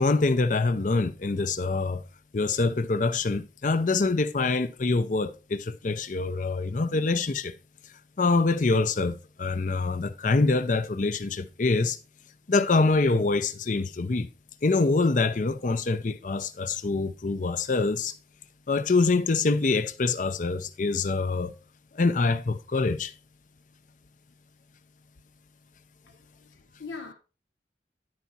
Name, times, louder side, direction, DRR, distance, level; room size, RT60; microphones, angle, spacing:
voice 1, 0.0-2.0 2.3-7.5 8.2-12.0 12.5-14.3 14.6-18.1 18.7-21.5 21.9-23.1, left 3 dB, 45° left, 0.5 m, -25 dB
voice 2, 26.0-27.1, left 4 dB, 85° left, 1.1 m, -42 dB
10.5 x 4.7 x 4.1 m
head